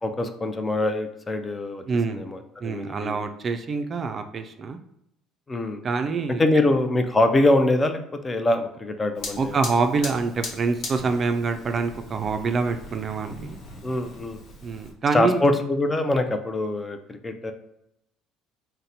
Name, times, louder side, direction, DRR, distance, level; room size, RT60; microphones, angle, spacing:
voice 1, 0.0-1.8 2.1-3.2 5.5-5.8 6.4-9.6 13.8-14.4 15.1-17.5, left 2 dB, 25° left, 7 dB, 0.4 m, -24 dB
voice 2, 1.9-2.2 2.6-4.8 5.8-6.4 9.4-13.6 14.6-15.4, right 4 dB, 40° right, 7 dB, 0.3 m, -26 dB
Fire, 9.2-14.9, left 2 dB, 60° left, 1.0 m, -39 dB
2.7 x 2.1 x 3.9 m, 0.80 s
supercardioid pair, 75°, 0 cm